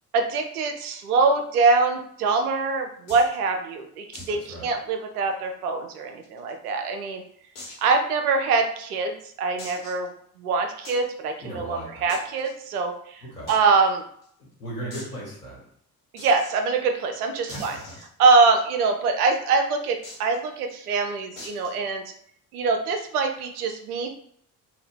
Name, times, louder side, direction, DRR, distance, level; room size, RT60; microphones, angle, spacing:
voice 1, 0.1-7.2 7.8-10.1 10.4-14.0 16.1-17.8 18.2-22.0 22.5-24.1, right 4 dB, 75° right, 5 dB, 0.6 m, -24 dB
sound 1, 3.1-3.4 4.1-4.4 4.7-4.8 5.2-5.3 5.9-6.7 7.5-7.9 8.5-8.6 9.6-10.1 10.8-11.1 12.1-12.5 13.5-13.6 13.9-14.0 14.2-14.3 14.9-15.1 16.2-16.5 17.5-18.6 20.0-20.4 21.4-21.7, left 1 dB, 60° left, 1.5 m, -42 dB
voice 2, 4.3-4.7 11.4-12.1 13.2-13.5 14.4-15.6 17.5-17.9, right 1 dB, 90° left, -5 dB, 1.1 m, -37 dB
2.7 x 2.7 x 3.5 m, 0.65 s
figure-of-eight pair, 50°, 45 cm